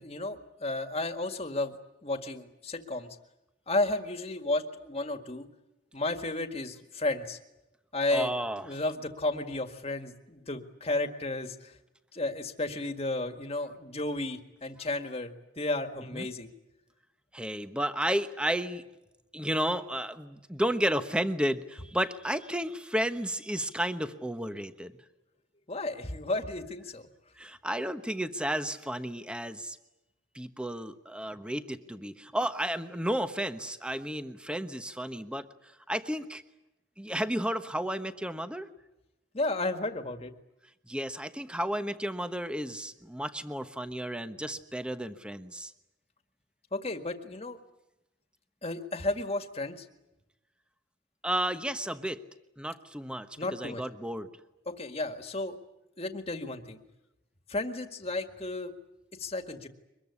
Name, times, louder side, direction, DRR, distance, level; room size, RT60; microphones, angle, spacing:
voice 1, 0.0-1.8 2.0-3.1 3.7-5.5 5.9-7.4 7.9-8.3 8.6-11.8 12.1-16.5 25.7-27.0 39.3-40.3 46.7-47.6 48.6-49.9 53.4-53.8 54.7-55.6 56.0-56.8 57.5-58.7 59.2-59.7, left 2 dB, 30° left, 8 dB, 1.9 m, -33 dB
voice 2, 8.1-8.6 16.1-16.3 17.3-18.8 19.3-25.0 27.4-29.8 30.3-36.4 37.0-38.7 40.9-45.7 51.2-52.2 52.6-54.3, equal, 5° right, 10 dB, 1.1 m, -32 dB
24.0 x 21.5 x 9.8 m, 0.95 s
head